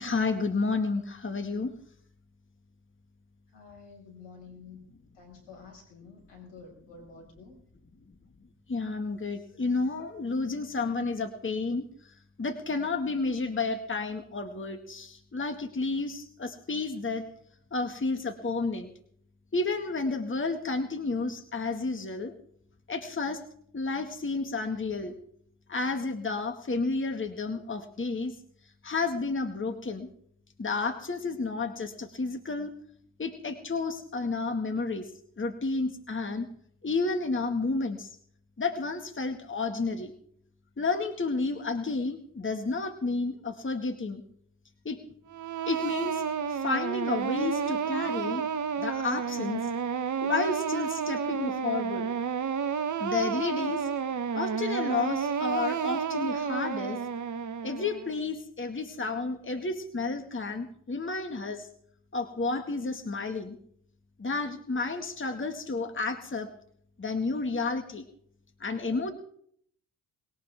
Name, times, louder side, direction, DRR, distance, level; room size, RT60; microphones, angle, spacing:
voice 1, 0.0-1.7 8.7-11.9 12.4-17.2 17.7-18.9 19.5-22.3 22.9-23.4 23.7-25.1 25.7-28.3 28.8-30.1 30.6-32.7 33.2-35.1 35.4-36.5 36.8-38.1 38.6-40.1 40.8-44.2 44.9-45.0 45.7-46.2 46.5-48.4 48.8-49.6 50.2-52.1 53.0-53.9 54.3-57.0 57.6-61.7 62.1-63.6 64.2-66.5 67.0-68.0 68.6-69.1, left 3 dB, 25° left, 5 dB, 2.2 m, -31 dB
voice 2, 3.5-4.9 5.1-7.6, left 4 dB, 75° left, 1 dB, 6.1 m, -50 dB
sound 1, 45.3-58.1, right 7 dB, 45° right, 1.4 m, -31 dB
21.0 x 18.0 x 3.7 m, 0.66 s
hypercardioid pair, 45°, 43 cm